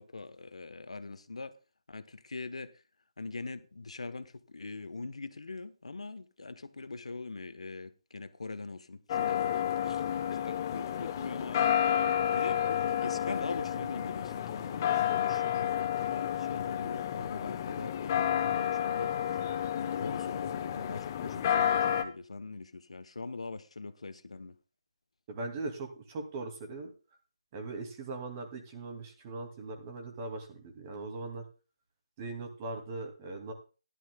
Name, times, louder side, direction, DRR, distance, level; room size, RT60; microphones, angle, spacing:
voice 1, 0.0-1.5 1.9-2.8 3.2-11.8 12.3-19.1 19.7-24.6, left 3 dB, 80° left, 1.2 m, -42 dB
sound 1, 9.1-22.0, left 10 dB, 30° left, 1.0 m, -30 dB
voice 2, 25.3-26.9 27.5-31.4 32.2-33.5, right 3 dB, 25° right, 2.5 m, -40 dB
15.0 x 11.5 x 2.3 m
hypercardioid pair, 160°, 3 cm